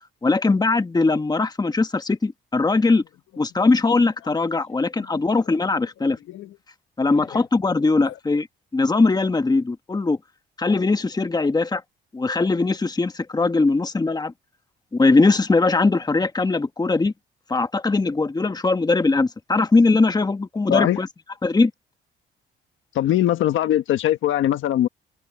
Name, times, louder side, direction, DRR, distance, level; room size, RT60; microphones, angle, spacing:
voice 1, 0.2-3.0 3.4-6.2 7.0-8.5 8.7-10.2 10.6-11.8 12.1-14.3 14.9-17.1 17.5-21.1 21.4-21.7, left 3 dB, 20° left, 1.5 m, -20 dB
voice 2, 22.9-24.9, left 12 dB, 80° left, 1.4 m, -21 dB
cardioid pair, 90°, 20 cm